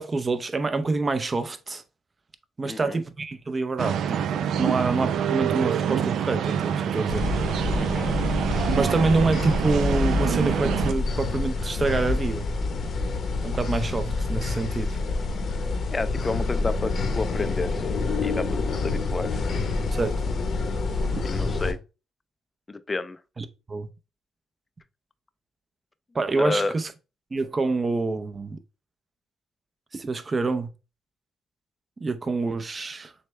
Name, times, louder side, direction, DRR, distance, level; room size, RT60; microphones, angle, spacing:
voice 1, 0.0-1.8 2.6-7.2 8.7-12.5 13.4-15.0 19.9-20.2 23.4-23.9 26.1-26.9 27.3-28.6 29.9-30.7 32.0-33.1, right 3 dB, 30° right, 0.6 m, -27 dB
voice 2, 2.6-3.0 7.7-8.1 15.9-17.9 18.2-18.5 18.8-19.4 21.2-21.8 22.7-23.2 26.4-26.7, left 3 dB, 25° left, 0.4 m, -30 dB
sound 1, 3.8-10.9, right 8 dB, 75° right, 0.3 m, -26 dB
sound 2, 7.1-21.7, left 3 dB, 55° left, 0.8 m, -27 dB
6.4 x 2.2 x 3.2 m
cardioid pair, 90°, 0 cm